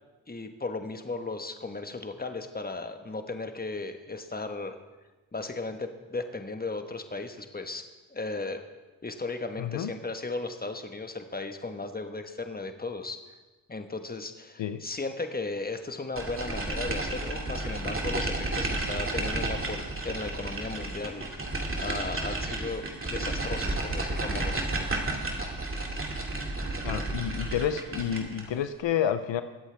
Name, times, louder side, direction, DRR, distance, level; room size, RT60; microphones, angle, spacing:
voice 1, 0.3-4.8 5.3-7.8 8.1-8.6 9.0-13.2 13.7-21.2 21.8-22.8 23.1-24.7, left 3 dB, 20° left, 7 dB, 1.3 m, -36 dB
voice 2, 9.6-9.9 14.6-14.8 26.8-29.4, left 9 dB, 75° left, 10 dB, 0.7 m, -29 dB
sound 1, 16.2-28.5, right 2 dB, 30° right, 2.4 m, -32 dB
21.5 x 8.1 x 3.5 m, 1.2 s
cardioid pair, 55°, 45 cm